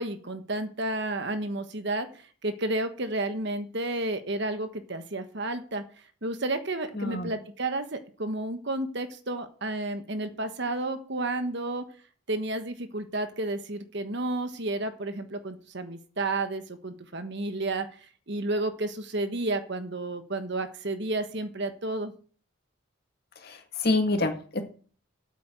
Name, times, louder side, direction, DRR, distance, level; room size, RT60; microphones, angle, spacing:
voice 1, 0.0-2.1 2.4-5.8 6.2-11.9 12.3-17.9 18.3-22.1, right 2 dB, 50° right, 8 dB, 1.3 m, -31 dB
voice 2, 7.0-7.3 23.4-24.6, left 2 dB, 45° left, 5 dB, 1.9 m, -27 dB
8.7 x 8.5 x 7.5 m, 0.43 s
head